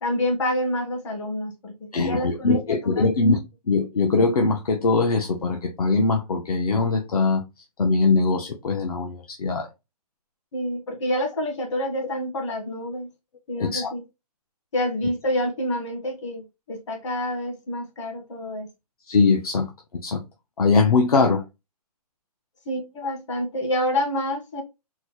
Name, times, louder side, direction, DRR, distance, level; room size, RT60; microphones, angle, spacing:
voice 1, 0.0-2.6 2.8-3.1 10.5-13.1 13.5-14.0 14.7-18.7 22.6-24.6, left 1 dB, 50° left, 1.3 m, -28 dB
voice 2, 1.9-3.4 3.7-7.4 7.8-9.7 13.6-13.9 19.1-19.7 20.0-20.2 20.6-21.4, left 4 dB, 65° left, 0.8 m, -21 dB
4.1 x 2.1 x 3.0 m
hypercardioid pair, 175°, 20 cm